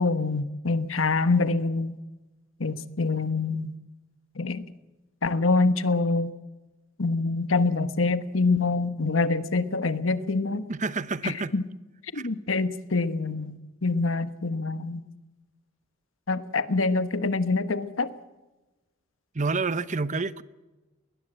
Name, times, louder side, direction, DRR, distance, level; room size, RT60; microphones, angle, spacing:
voice 1, 0.0-2.0 2.6-3.7 4.3-4.6 5.2-6.3 7.0-10.6 11.2-11.6 12.1-15.0 16.3-18.1, left 3 dB, 70° left, 1.2 m, -25 dB
voice 2, 10.7-11.5 12.1-12.3 19.3-20.4, right 4 dB, 40° right, 0.8 m, -28 dB
21.0 x 20.0 x 7.9 m
head